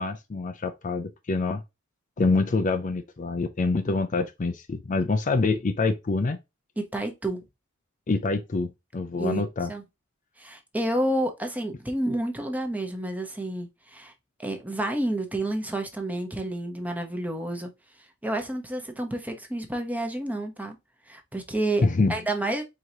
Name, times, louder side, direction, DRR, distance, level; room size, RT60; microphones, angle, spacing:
voice 1, 0.0-1.6 2.2-6.4 8.1-9.7 21.8-22.1, left 3 dB, 35° left, 0.5 m, -26 dB
voice 2, 6.8-7.4 9.2-9.8 10.4-14.1 14.4-17.7 18.2-20.8 21.1-22.6, right 1 dB, 5° right, 0.9 m, -30 dB
4.7 x 3.9 x 2.8 m
head